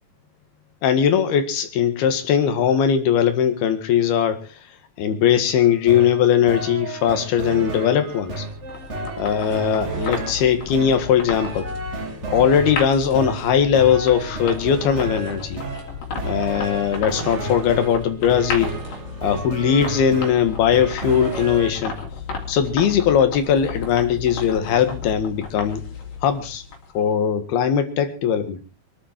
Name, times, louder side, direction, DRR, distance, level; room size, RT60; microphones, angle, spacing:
voice 1, 0.8-4.6 5.0-8.5 9.2-11.7 12.3-15.6 16.2-18.8 19.2-22.0 22.5-25.8 26.2-26.6 27.0-28.6, left 8 dB, 85° left, 9 dB, 3.7 m, -20 dB
sound 1, 5.6-21.7, right 4 dB, 80° right, 0.6 m, -32 dB
sound 2, 8.0-27.0, left 5 dB, 70° left, 4.7 m, -34 dB
24.0 x 11.5 x 4.5 m, 0.36 s
omnidirectional pair, 4.3 m